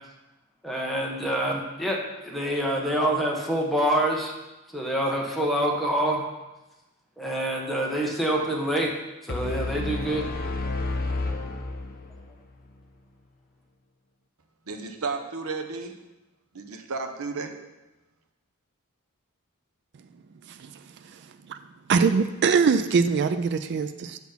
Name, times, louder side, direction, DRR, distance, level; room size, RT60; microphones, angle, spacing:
voice 1, 0.6-2.0 2.2-4.3 4.7-6.2 7.2-8.9 9.2-10.2, right 1 dB, ahead, -2 dB, 1.3 m, -26 dB
sound 1, 9.3-12.3, left 2 dB, 45° left, 0.8 m, -30 dB
voice 2, 14.7-16.0 16.5-17.6, right 4 dB, 70° right, 5 dB, 0.9 m, -33 dB
voice 3, 20.4-21.6 21.9-24.2, right 5 dB, 55° right, 10 dB, 0.4 m, -24 dB
7.2 x 6.0 x 5.7 m, 1.1 s
head